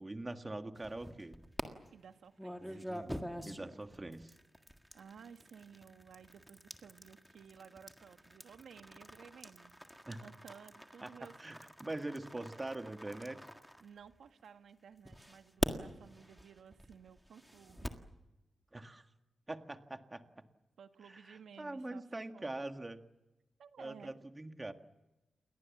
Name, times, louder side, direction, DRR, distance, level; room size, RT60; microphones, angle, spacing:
voice 1, 0.0-1.4 2.6-4.4 10.1-10.2 11.0-11.1 11.4-13.5 18.7-19.1 19.5-20.2 21.1-23.1 23.8-24.7, right 2 dB, 15° right, 6 dB, 1.7 m, -43 dB
sound 1, 0.8-1.6 2.4-14.4 15.1-18.1, equal, ahead, 1.7 m, -45 dB
voice 2, 1.9-2.8 4.9-9.7 10.2-11.3 13.8-17.9 20.8-22.0 22.3-22.5 23.6-24.2, right 7 dB, 85° right, 7 dB, 1.7 m, -56 dB
29.0 x 22.5 x 7.3 m, 1.0 s
wide cardioid pair, 165°, 0 cm